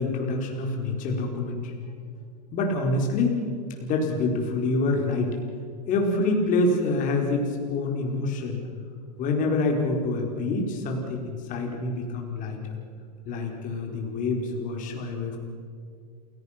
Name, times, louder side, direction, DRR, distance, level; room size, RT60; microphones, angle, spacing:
voice 1, 0.0-1.7 2.5-3.4 3.8-5.4 5.9-8.6 9.2-12.7 13.2-15.4, left 2 dB, 40° left, 1 dB, 4.6 m, -26 dB
28.5 x 17.5 x 6.0 m, 2.3 s
hypercardioid pair, 100°, 21 cm